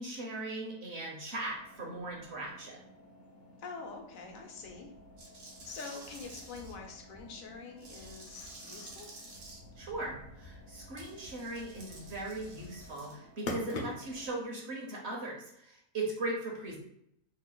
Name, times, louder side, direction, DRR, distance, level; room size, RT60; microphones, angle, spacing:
voice 1, 0.0-2.9 9.8-16.8, right 2 dB, 55° right, -1 dB, 1.0 m, -39 dB
sound 1, 1.5-14.3, left 1 dB, 55° left, 0.8 m, -48 dB
voice 2, 3.6-4.9 5.6-9.1, left 4 dB, 75° left, 2 dB, 1.1 m, -45 dB
sound 2, 5.2-6.7 7.8-9.6 11.0-13.1, right 2 dB, 80° right, 1.3 m, -51 dB
3.2 x 2.3 x 3.7 m, 0.76 s
omnidirectional pair, 1.4 m